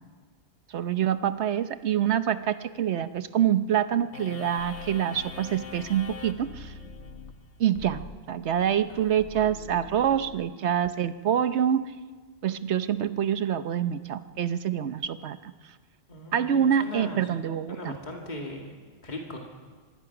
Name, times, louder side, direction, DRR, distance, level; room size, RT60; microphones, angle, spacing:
voice 1, 0.7-6.7 7.6-11.9 12.4-15.5 16.3-18.0, right 9 dB, 80° right, 12 dB, 1.1 m, -26 dB
sound 1, 4.1-10.9, left 4 dB, 85° left, 1.9 m, -43 dB
voice 2, 16.1-17.3 17.7-18.7 19.0-19.4, left 1 dB, 40° left, 0 dB, 2.5 m, -38 dB
25.0 x 21.0 x 6.0 m, 1.5 s
omnidirectional pair, 1.1 m